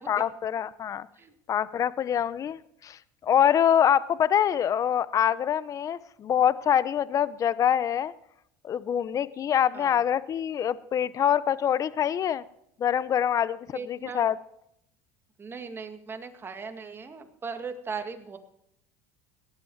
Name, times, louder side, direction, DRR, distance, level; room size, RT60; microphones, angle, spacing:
voice 1, 0.1-1.1 1.5-8.1 8.6-12.4 12.8-14.4, left 9 dB, 35° left, 17 dB, 0.7 m, -25 dB
voice 2, 13.7-14.3 15.4-18.4, right 5 dB, 25° right, 7 dB, 2.0 m, -38 dB
18.0 x 11.0 x 4.7 m, 0.75 s
supercardioid pair, 105°, 9 cm